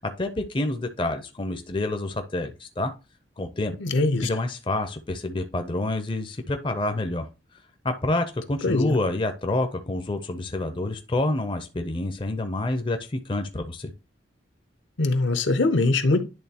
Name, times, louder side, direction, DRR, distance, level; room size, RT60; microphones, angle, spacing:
voice 1, 0.0-2.9 3.4-3.7 4.2-7.3 7.8-13.9, left 2 dB, 25° left, 0.5 m, -28 dB
voice 2, 3.8-4.3 8.6-9.0 15.0-16.2, left 2 dB, 70° left, 0.8 m, -22 dB
10.5 x 3.6 x 2.8 m
head